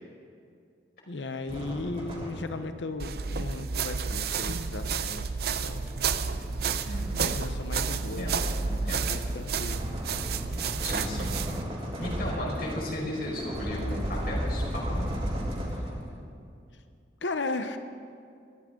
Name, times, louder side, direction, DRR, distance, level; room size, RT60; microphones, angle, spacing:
voice 1, 1.1-5.9 7.1-8.3 9.0-9.8 12.4-12.6 15.7-15.9 17.2-17.8, left 3 dB, 90° left, 8 dB, 0.9 m, -36 dB
sound 1, 1.5-2.8 4.0-16.2, equal, 35° right, 3.1 m, -35 dB
sound 2, 3.0-11.6, right 5 dB, 60° right, 0.6 m, -31 dB
voice 2, 8.2-9.1 10.8-11.4 12.0-15.2, left 1 dB, 55° left, -3 dB, 5.0 m, -35 dB
21.5 x 14.0 x 3.8 m, 2.4 s
head